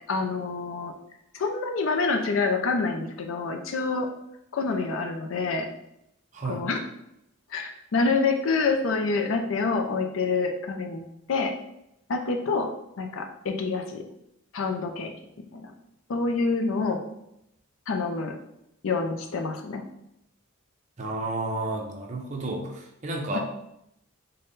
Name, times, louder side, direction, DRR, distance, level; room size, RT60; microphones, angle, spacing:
voice 1, 0.1-0.9 1.3-4.1 4.5-5.7 6.4-6.8 7.5-11.0 11.3-11.5 12.1-12.7 13.0-14.0 14.5-15.1 15.5-15.7 16.1-17.0 17.9-18.3 18.8-19.8 23.3-23.4, left 4 dB, 65° left, 4 dB, 0.4 m, -27 dB
voice 2, 21.0-23.4, right 2 dB, 35° right, 0 dB, 0.6 m, -31 dB
3.9 x 2.2 x 3.6 m, 0.79 s
head